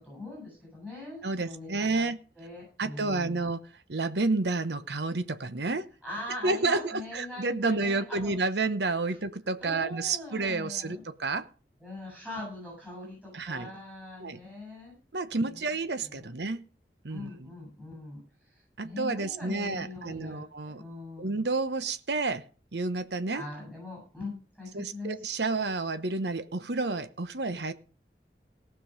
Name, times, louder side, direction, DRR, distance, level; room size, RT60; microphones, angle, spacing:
voice 1, 0.0-2.1 2.3-3.4 6.0-8.3 9.1-9.2 9.6-11.0 11.8-15.0 15.3-15.7 16.0-16.3 17.1-18.2 18.5-21.4 23.3-25.2, left 2 dB, 5° right, -4 dB, 7.9 m, -41 dB
voice 2, 1.2-2.2 2.8-3.6 3.9-5.9 6.4-11.5 13.3-13.7 14.2-14.4 15.1-16.6 17.0-17.5 18.8-20.8 21.2-22.4 22.7-23.4 24.7-27.7, right 3 dB, 80° right, 12 dB, 1.0 m, -30 dB
18.0 x 6.1 x 5.2 m, 0.35 s
head